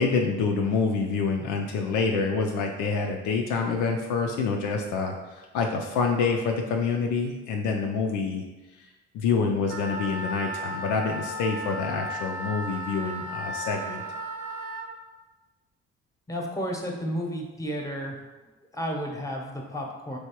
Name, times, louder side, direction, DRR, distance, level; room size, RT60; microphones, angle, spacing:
voice 1, 0.0-8.4 8.8-8.9 9.1-14.0, left 4 dB, 60° left, 2 dB, 0.5 m, -27 dB
Wind instrument woodwind instrument, 9.6-14.9, equal, 65° right, 0.6 m, -35 dB
voice 2, 16.3-18.2 18.7-20.2, equal, 10° left, 0 dB, 0.9 m, -32 dB
4.5 x 3.3 x 2.9 m, 1.2 s
figure-of-eight pair, 40°, 34 cm